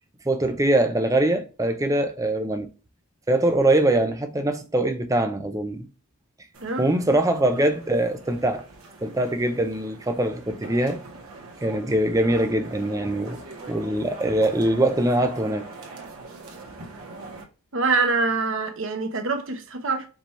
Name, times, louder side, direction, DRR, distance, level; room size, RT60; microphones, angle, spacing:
voice 1, 0.3-2.7 3.3-5.9 6.8-8.6 9.0-11.0 11.6-13.4 13.7-15.7, right 1 dB, 15° right, 0.5 m, -23 dB
sound 1, 6.5-17.4, right 3 dB, 80° right, 1.3 m, -42 dB
voice 2, 6.6-6.9 17.7-20.1, right 4 dB, 60° right, 0.9 m, -25 dB
5.3 x 2.9 x 3.1 m
head